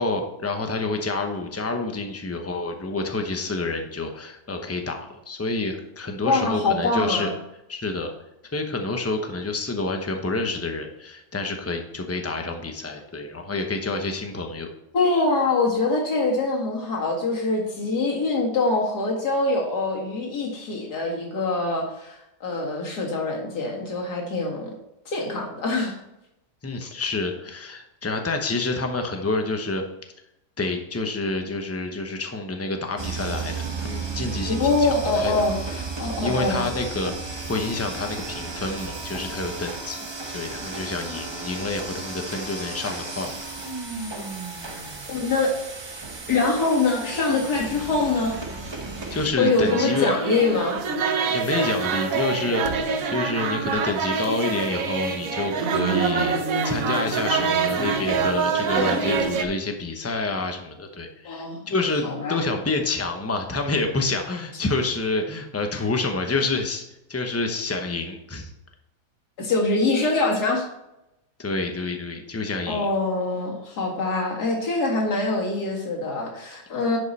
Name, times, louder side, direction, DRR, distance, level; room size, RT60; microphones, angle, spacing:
voice 1, 0.0-7.3 7.7-8.1 8.5-14.7 26.6-29.8 30.6-35.3 36.2-37.1 37.5-43.3 49.1-50.1 51.3-66.8 67.1-68.5 71.4-72.9, left 3 dB, 15° left, 4 dB, 0.5 m, -28 dB
voice 2, 6.2-7.3 14.9-24.7 25.1-25.9 34.4-36.6 45.1-45.5 46.3-48.4 49.4-50.8 61.2-61.7 62.0-62.4 69.4-70.7 72.7-77.0, left 3 dB, 65° left, -1 dB, 2.5 m, -24 dB
sound 1, 33.0-49.3, right 4 dB, 20° right, 0.7 m, -34 dB
sound 2, 48.2-59.4, right 5 dB, 60° right, 1.2 m, -25 dB
10.5 x 5.4 x 4.2 m, 0.87 s
omnidirectional pair, 1.8 m